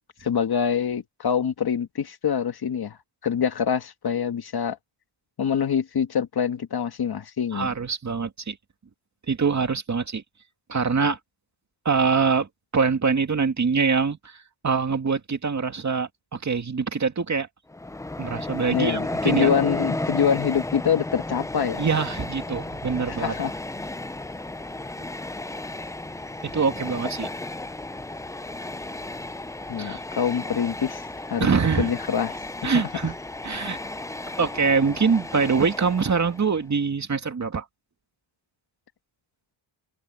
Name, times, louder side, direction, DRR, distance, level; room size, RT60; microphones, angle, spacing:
voice 1, 0.2-3.0 3.2-4.8 5.4-7.7 18.7-21.8 23.1-23.5 29.7-31.5 31.8-32.8, left 7 dB, 50° left, 1.6 m, -25 dB
voice 2, 7.5-8.6 9.3-10.2 10.7-11.2 11.8-17.5 18.2-19.5 21.8-23.4 26.4-27.3 29.8-30.0 31.4-31.9 32.6-33.2 33.4-33.8 34.4-37.7, right 5 dB, 35° right, 2.3 m, -24 dB
Train, 17.7-36.6, left 2 dB, 5° left, 0.4 m, -33 dB
wide cardioid pair, 120°, 48 cm